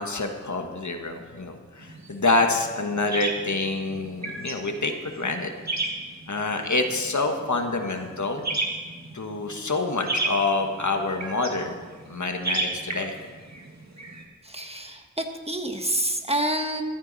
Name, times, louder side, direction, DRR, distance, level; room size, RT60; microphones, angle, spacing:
voice 1, 0.0-5.5 6.3-8.6 9.1-11.8 12.1-13.1, left 3 dB, 70° left, 4 dB, 1.5 m, -27 dB
sound 1, 1.8-14.2, right 2 dB, 65° right, 1.9 m, -34 dB
voice 2, 14.4-16.8, right 1 dB, 20° right, 4 dB, 1.4 m, -28 dB
15.5 x 13.5 x 4.1 m, 1.5 s
wide cardioid pair, 60°, 30 cm